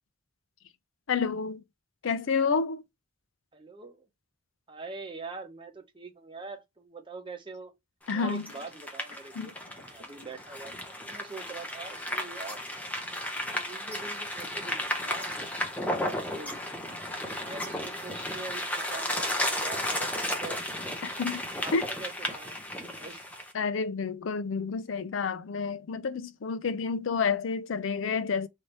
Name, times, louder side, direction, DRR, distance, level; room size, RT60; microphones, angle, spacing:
voice 1, 1.1-1.6 2.0-2.8 8.1-8.4 9.4-9.5 21.0-21.4 21.7-21.8 23.5-28.5, left 5 dB, 70° left, 0.5 m, -29 dB
voice 2, 3.5-4.1 4.7-7.7 8.1-12.8 13.6-15.3 15.9-16.6 17.3-20.6 21.5-23.2, right 3 dB, 25° right, 0.8 m, -44 dB
sound 1, 8.1-23.5, left 1 dB, 5° left, 0.7 m, -34 dB
sound 2, 8.3-10.4, left 2 dB, 35° left, 1.8 m, -52 dB
3.4 x 2.7 x 2.9 m
head